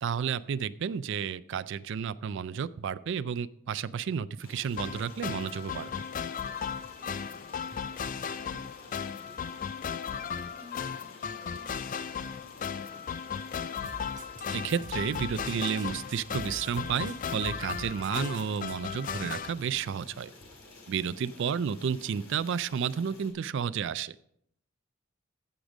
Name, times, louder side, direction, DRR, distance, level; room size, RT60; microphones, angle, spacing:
voice 1, 0.0-5.9 14.5-20.3 20.9-24.2, right 7 dB, 60° right, 16 dB, 0.4 m, -31 dB
Stream, 4.4-23.3, left 2 dB, 80° left, 2.5 m, -52 dB
sound 1, 4.8-19.5, left 7 dB, 40° left, 0.3 m, -36 dB
voice 2, 8.1-10.9 11.2-13.7 21.0-21.3, left 2 dB, 10° left, -2 dB, 3.4 m, -55 dB
sound 2, 13.8-18.8, right 3 dB, 40° right, 0.8 m, -46 dB
15.0 x 5.1 x 5.1 m, 0.73 s
head